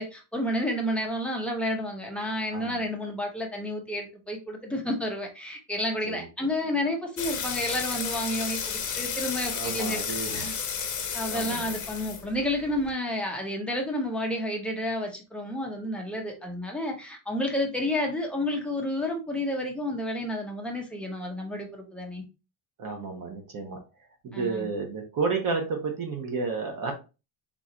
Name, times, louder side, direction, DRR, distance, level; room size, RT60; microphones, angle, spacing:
voice 1, 0.0-10.5 11.1-22.2 24.3-24.7, left 1 dB, ahead, 0 dB, 0.5 m, -30 dB
voice 2, 2.5-2.8 6.0-6.3 9.5-10.6 11.3-11.7 22.8-23.8 24.2-26.9, right 4 dB, 40° right, 3 dB, 0.9 m, -31 dB
sound 1, 7.2-12.9, left 7 dB, 40° left, 0.7 m, -33 dB
3.8 x 2.5 x 2.9 m, 0.30 s
cardioid pair, 150°, 50 cm